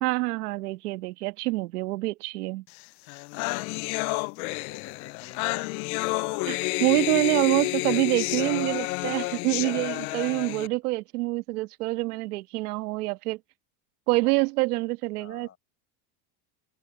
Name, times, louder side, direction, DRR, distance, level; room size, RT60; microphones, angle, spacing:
voice 1, 0.0-2.6 6.5-13.4 14.1-15.5, right 23 dB, 80° right, 1.5 m, -26 dB
sound 1, 2.8-2.9 3.1-10.7, left 26 dB, 70° left, 0.6 m, -30 dB
voice 2, 4.2-7.8 15.2-15.6, left 9 dB, 30° left, 7.2 m, -48 dB
open air
supercardioid pair, 130°, 45 cm